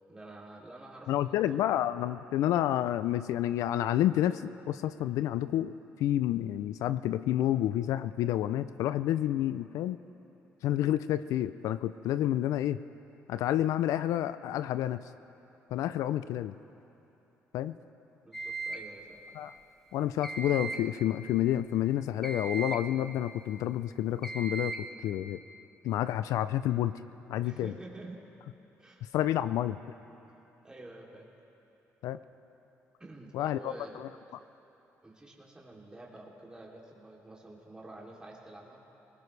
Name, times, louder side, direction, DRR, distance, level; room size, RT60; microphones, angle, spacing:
voice 1, 0.0-1.6 18.2-19.2 27.4-28.2 28.8-29.0 30.6-31.3 33.0-34.0 35.0-38.8, right 2 dB, 15° right, -3 dB, 2.8 m, -49 dB
voice 2, 1.1-5.7 6.0-10.0 10.6-12.8 13.3-15.0 15.7-16.5 17.5-17.7 19.3-19.5 19.9-25.4 25.8-26.9 27.3-27.7 29.1-29.8 32.0-32.2 33.3-34.1, left 12 dB, 80° left, 13 dB, 0.4 m, -29 dB
sound 1, 18.3-18.9 20.2-20.9 22.2-22.9 24.2-24.9, right 3 dB, 5° left, 1.9 m, -37 dB
20.0 x 19.0 x 3.3 m, 2.9 s
supercardioid pair, 75°, 6 cm